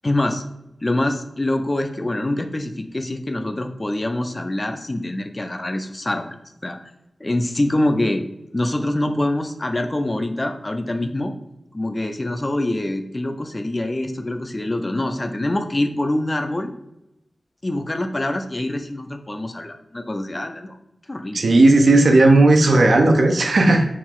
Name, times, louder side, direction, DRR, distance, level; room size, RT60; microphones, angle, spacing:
voice 1, 0.0-0.4 0.8-6.3 6.6-6.8 7.2-8.2 8.5-11.3 11.7-16.7 17.6-20.8 21.1-21.4, left 1 dB, 25° left, 7 dB, 0.4 m, -25 dB
voice 2, 21.3-23.8, right 2 dB, 75° right, 3 dB, 0.5 m, -14 dB
4.4 x 2.4 x 3.6 m, 0.87 s
wide cardioid pair, 110°, 0 cm